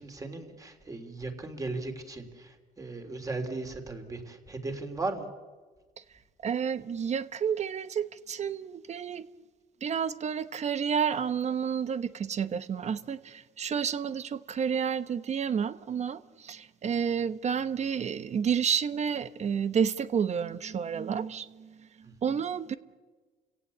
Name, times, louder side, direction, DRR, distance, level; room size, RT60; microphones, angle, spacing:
voice 1, 0.0-5.3, right 3 dB, 20° right, 3.4 m, -37 dB
voice 2, 6.4-9.3 9.8-21.8 22.2-22.7, right 7 dB, 40° right, 1.0 m, -30 dB
30.0 x 17.0 x 8.5 m
cardioid pair, 110°, 17 cm